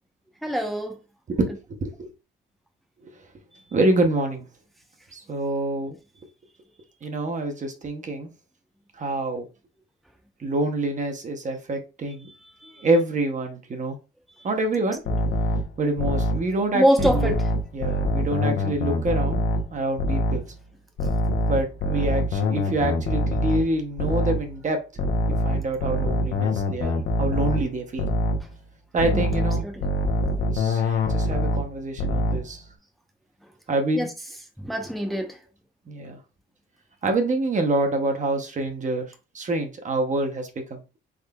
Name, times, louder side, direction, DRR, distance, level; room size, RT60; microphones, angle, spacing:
voice 1, 0.4-1.0 12.3-12.4 12.6-12.9 14.4-14.5 16.7-17.4 29.0-29.9 33.9-34.1 34.6-35.4, equal, ahead, 0.7 m, -25 dB
voice 2, 1.3-2.1 3.0-3.1 3.7-4.4 5.1-6.0 7.0-8.3 8.9-9.5 10.4-12.3 12.8-14.0 14.4-15.0 15.8-17.3 17.7-19.4 19.7-20.5 21.5-25.0 25.3-28.1 28.9-29.7 30.4-32.6 33.7-34.1 35.9-36.2 37.0-40.8, right 2 dB, 40° right, 0.7 m, -26 dB
sound 1, 15.1-16.5 17.0-19.7 20.0-20.5 21.0-24.5 25.0-27.7 28.0-28.5 29.0-31.7 32.0-32.5, left 1 dB, 75° left, 0.8 m, -24 dB
3.6 x 3.1 x 2.2 m
cardioid pair, 90°, 20 cm